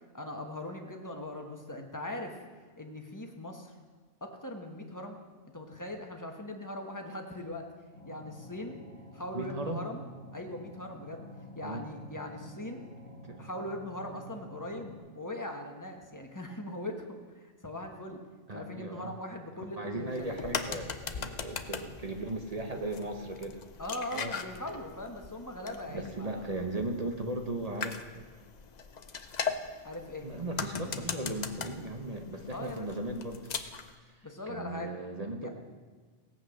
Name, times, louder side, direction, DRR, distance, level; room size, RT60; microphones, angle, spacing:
voice 1, 0.1-2.4 2.8-3.7 4.2-5.2 5.5-7.7 8.0-8.8 9.1-10.0 10.3-11.2 11.5-12.8 13.4-18.2 18.5-20.5 23.8-26.5 29.8-30.3 32.5-32.9 34.2-34.9 35.4-35.5, left 1 dB, 15° left, 3 dB, 1.2 m, -40 dB
sound 1, 7.9-15.0, equal, 85° right, 3.9 m, -49 dB
voice 2, 9.3-9.8 11.6-11.9 13.2-13.5 18.5-19.1 19.8-23.6 24.1-24.3 25.9-28.3 30.2-33.4 34.5-35.5, right 2 dB, 35° right, 4 dB, 1.0 m, -37 dB
sound 2, 20.1-33.9, left 6 dB, 45° left, 0.6 m, -40 dB
17.0 x 8.2 x 6.4 m, 1.4 s
omnidirectional pair, 1.3 m